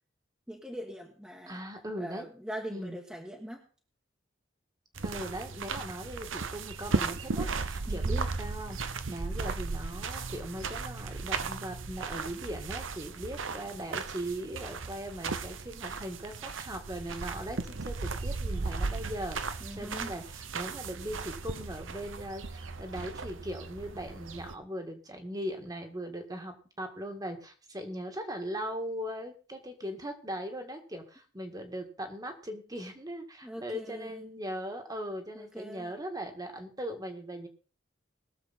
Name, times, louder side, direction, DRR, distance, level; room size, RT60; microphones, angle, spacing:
voice 1, 0.5-1.6 2.0-3.6 7.9-8.3 19.6-20.1 33.4-34.3 35.3-35.9, equal, 5° right, -1 dB, 1.4 m, -42 dB
voice 2, 1.5-2.2 2.7-3.0 5.0-37.5, equal, 20° right, 5 dB, 1.9 m, -39 dB
sound 1, 4.9-24.5, right 4 dB, 80° right, 0.9 m, -36 dB
21.5 x 7.2 x 4.2 m, 0.38 s
head